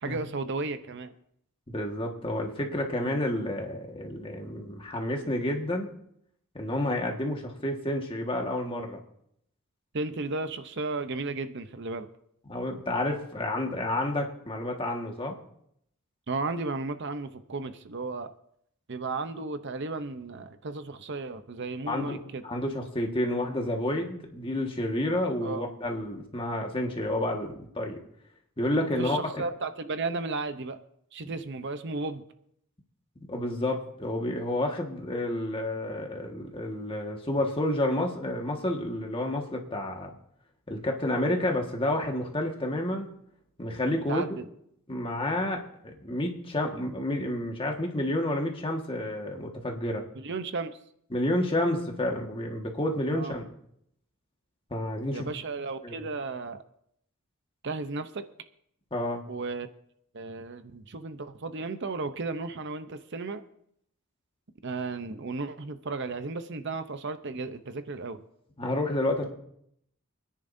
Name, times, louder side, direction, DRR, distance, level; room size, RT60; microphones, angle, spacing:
voice 1, 0.0-1.1 9.9-12.1 16.3-18.3 18.9-22.4 25.4-25.6 29.0-30.8 31.1-32.2 44.1-44.5 50.2-50.8 53.1-53.4 55.1-56.6 57.6-58.2 59.3-59.7 60.1-63.4 64.6-68.2, right 3 dB, 55° right, 10 dB, 0.7 m, -34 dB
voice 2, 1.7-5.9 6.5-9.0 12.5-15.4 21.9-28.0 28.6-29.4 33.3-40.1 40.7-43.1 43.6-44.2 44.9-50.1 51.1-53.4 54.7-55.3 55.8-55.9 58.9-59.2 68.6-69.3, left 1 dB, 25° left, 2 dB, 1.6 m, -30 dB
27.5 x 10.0 x 2.7 m, 0.73 s
head